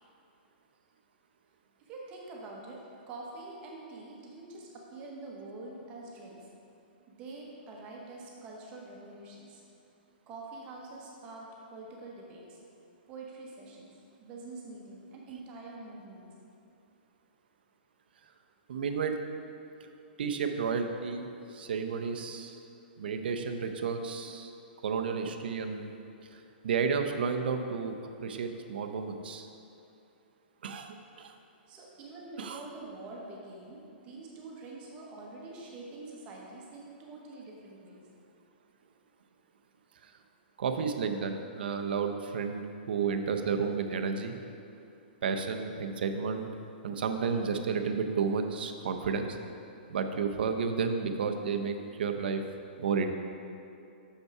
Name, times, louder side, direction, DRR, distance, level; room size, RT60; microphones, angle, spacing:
voice 1, 1.8-6.5 7.1-9.6 10.3-12.6 13.1-13.9 14.2-16.3 31.7-38.0, right 2 dB, 20° right, -2 dB, 1.0 m, -46 dB
voice 2, 18.7-19.2 20.2-22.5 23.0-24.5 24.8-25.9 26.3-27.9 28.2-29.5 30.6-31.3 32.4-32.6 40.6-44.3 45.2-46.5 46.8-49.4 49.9-52.4 52.8-53.1, right 5 dB, 70° right, 6 dB, 0.6 m, -32 dB
6.7 x 5.4 x 4.7 m, 2.6 s
hypercardioid pair, 170°, 6 cm